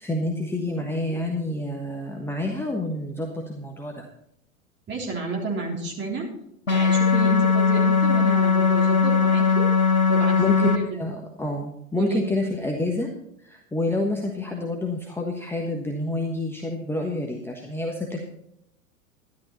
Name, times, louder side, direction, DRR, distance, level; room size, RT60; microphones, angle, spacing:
voice 1, 0.0-4.0 10.4-13.1 13.4-18.2, left 2 dB, 5° left, 1 dB, 1.3 m, -28 dB
voice 2, 4.9-6.3 6.7-9.6 10.1-11.0 12.0-12.2, right 3 dB, 25° right, -1 dB, 3.6 m, -30 dB
sound 1, 6.7-10.8, left 5 dB, 80° left, 1.7 m, -19 dB
13.0 x 11.5 x 4.2 m, 0.75 s
figure-of-eight pair, 90°, 41 cm